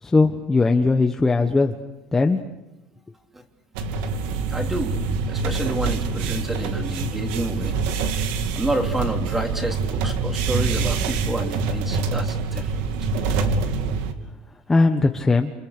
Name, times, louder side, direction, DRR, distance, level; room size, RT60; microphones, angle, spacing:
voice 1, 0.0-1.8 2.1-2.4 14.7-15.5, left 3 dB, 10° left, 4 dB, 1.2 m, -19 dB
sound 1, 3.7-14.1, right 4 dB, 80° right, 2.7 m, -25 dB
voice 2, 4.5-7.8 8.5-12.7, right 1 dB, 10° right, 3 dB, 3.2 m, -29 dB
29.0 x 29.0 x 6.7 m, 0.98 s
cardioid pair, 160°, 3 cm